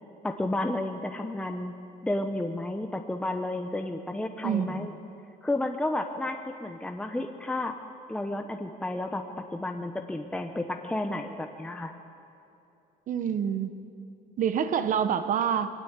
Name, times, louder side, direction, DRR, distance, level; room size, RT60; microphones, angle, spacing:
voice 1, 0.2-1.7 2.0-4.9 5.4-7.7 8.1-9.2 9.5-11.9, left 1 dB, 5° left, 4 dB, 0.8 m, -31 dB
voice 2, 4.4-4.9 13.1-13.7 14.4-15.7, right 8 dB, 50° right, 10 dB, 1.2 m, -27 dB
23.0 x 19.0 x 8.2 m, 2.7 s
cardioid pair, 150°, 17 cm